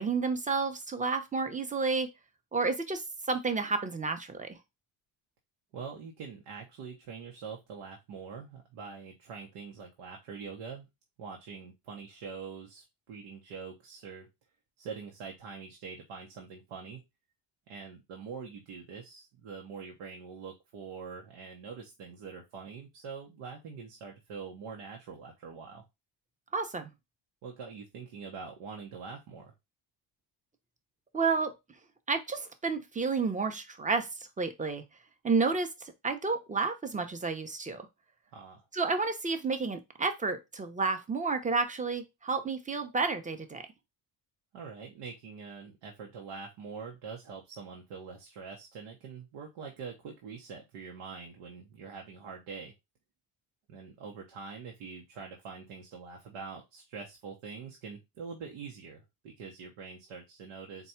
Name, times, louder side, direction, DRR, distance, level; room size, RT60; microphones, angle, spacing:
voice 1, 0.0-2.1 2.5-4.6 26.5-26.9 31.1-31.5 32.1-34.1 34.4-34.8 35.2-37.9 38.7-43.6, right 4 dB, 15° right, 8 dB, 0.7 m, -31 dB
voice 2, 5.7-10.9 11.2-14.3 14.8-17.0 17.7-25.8 27.4-29.5 38.3-38.6 44.5-52.7 53.7-60.9, right 5 dB, 90° right, 0 dB, 1.0 m, -44 dB
4.1 x 2.3 x 4.3 m, 0.22 s
cardioid pair, 100°, 48 cm